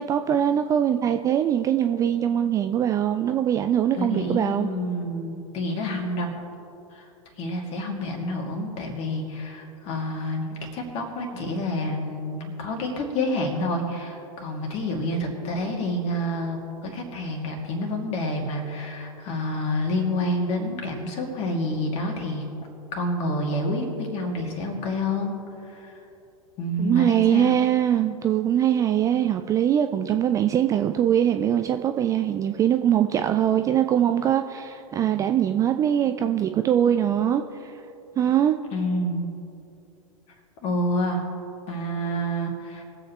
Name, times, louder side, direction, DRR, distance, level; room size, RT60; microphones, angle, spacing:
voice 1, 0.0-4.7 26.8-37.7 38.2-38.6, right 10 dB, 20° right, 7 dB, 0.3 m, -22 dB
voice 2, 4.0-6.3 6.9-7.1 7.4-22.5 22.9-26.0 26.6-27.5 38.7-39.3 40.6-41.3 41.7-42.8, left 1 dB, 35° left, 1 dB, 2.3 m, -28 dB
21.5 x 7.8 x 3.1 m, 2.8 s
figure-of-eight pair, 95°, 18 cm